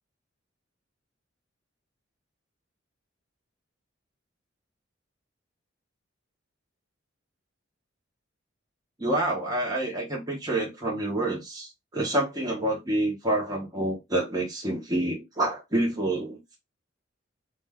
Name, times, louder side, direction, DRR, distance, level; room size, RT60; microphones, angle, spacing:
voice 1, 9.0-16.6, right 1 dB, 20° right, 0.8 m, -28 dB
2.5 x 2.2 x 3.3 m
head